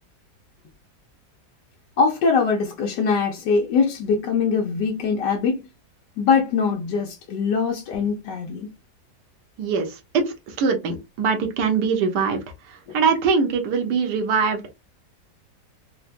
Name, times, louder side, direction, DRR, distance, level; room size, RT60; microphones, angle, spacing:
voice 1, 2.0-5.6 6.2-8.7 12.9-13.0, left 5 dB, 85° left, 1.3 m, -22 dB
voice 2, 9.6-14.6, right 5 dB, 75° right, 1.4 m, -23 dB
3.9 x 2.2 x 2.5 m
omnidirectional pair, 1.8 m